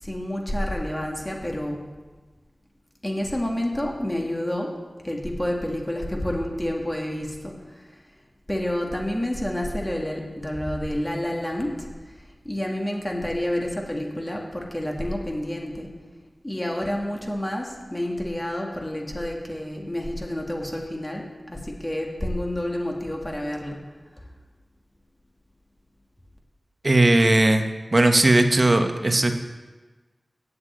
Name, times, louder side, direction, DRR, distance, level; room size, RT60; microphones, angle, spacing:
voice 1, 0.0-1.8 3.0-4.7 5.0-7.9 8.5-15.9 16.4-23.8, left 1 dB, 20° left, 0 dB, 1.9 m, -29 dB
voice 2, 26.8-27.7 27.9-29.3, right 2 dB, 45° right, 6 dB, 1.0 m, -18 dB
8.1 x 7.6 x 8.5 m, 1.3 s
wide cardioid pair, 60°, 0 cm